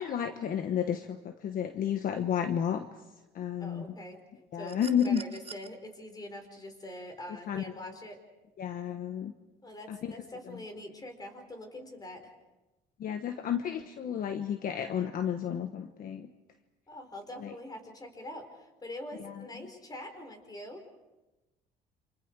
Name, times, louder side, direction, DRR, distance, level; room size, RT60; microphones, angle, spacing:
voice 1, 0.0-2.9 3.3-3.9 4.5-5.2 7.5-7.9 8.6-9.3 9.9-10.1 10.5-10.6 13.0-16.3 17.4-17.5 19.2-19.4, left 8 dB, 55° left, 7 dB, 1.3 m, -32 dB
voice 2, 3.6-4.2 4.6-4.8 5.0-8.2 9.6-12.3 16.9-20.8, left 1 dB, 25° left, 5 dB, 4.9 m, -44 dB
sound 1, 4.7-5.7 7.2-7.3, right 7 dB, 35° right, 0.9 m, -47 dB
29.5 x 27.0 x 4.8 m, 1.1 s
cardioid pair, 110°, 17 cm